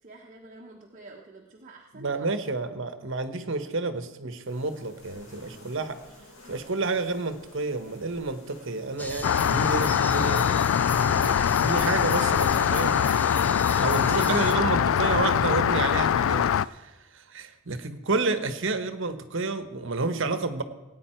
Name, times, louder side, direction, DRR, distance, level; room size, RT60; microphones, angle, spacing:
voice 1, 0.0-2.2 13.3-14.4, right 2 dB, 40° right, -1 dB, 1.2 m, -48 dB
voice 2, 1.9-6.0 6.5-10.6 11.1-13.2 13.8-20.6, right 3 dB, 65° right, 9 dB, 1.1 m, -30 dB
sound 1, 4.5-12.8, left 2 dB, 90° left, 4.5 m, -53 dB
sound 2, 9.0-14.5, left 1 dB, 10° left, 0.6 m, -36 dB
Rain, 9.2-16.7, left 8 dB, 75° left, 0.3 m, -23 dB
18.5 x 9.4 x 4.5 m, 1.2 s
head